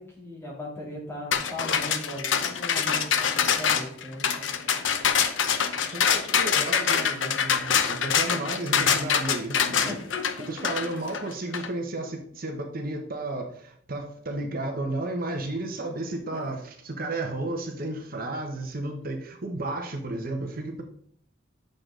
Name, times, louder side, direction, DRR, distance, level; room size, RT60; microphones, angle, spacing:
voice 1, 0.0-5.1 9.8-10.9, left 1 dB, 15° left, -5 dB, 3.0 m, -39 dB
sound 1, 1.3-11.7, left 7 dB, 85° left, 0.8 m, -25 dB
voice 2, 5.9-10.0 10.5-20.8, right 2 dB, 50° right, 3 dB, 1.1 m, -33 dB
8.6 x 6.5 x 3.8 m, 0.65 s
head